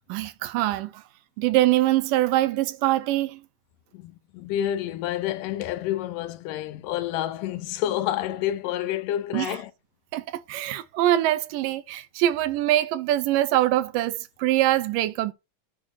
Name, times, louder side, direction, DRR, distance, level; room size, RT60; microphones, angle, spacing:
voice 1, 0.1-1.0 1.4-3.4 9.3-9.6 10.1-15.3, right 14 dB, 80° right, 2.3 m, -23 dB
voice 2, 3.9-9.7, left 12 dB, 80° left, 2.2 m, -29 dB
9.7 x 3.8 x 6.3 m
omnidirectional pair, 3.9 m